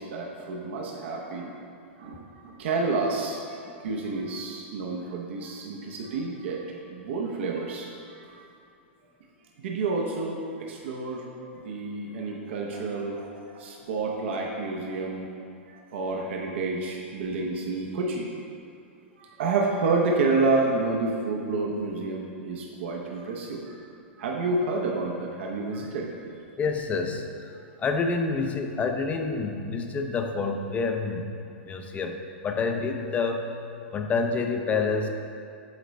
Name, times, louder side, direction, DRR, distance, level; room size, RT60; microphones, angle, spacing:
voice 1, 0.0-1.5 2.0-6.6 6.9-8.4 9.6-11.2 11.6-13.3 13.5-15.3 15.7-18.3 19.2-23.7 24.2-26.2, right 3 dB, 70° right, -1 dB, 0.8 m, -29 dB
voice 2, 26.6-27.5 27.8-31.3 31.6-33.5 33.9-35.1, left 4 dB, 20° left, 5 dB, 0.5 m, -28 dB
8.2 x 4.0 x 3.2 m, 2.4 s
hypercardioid pair, 120°, 7 cm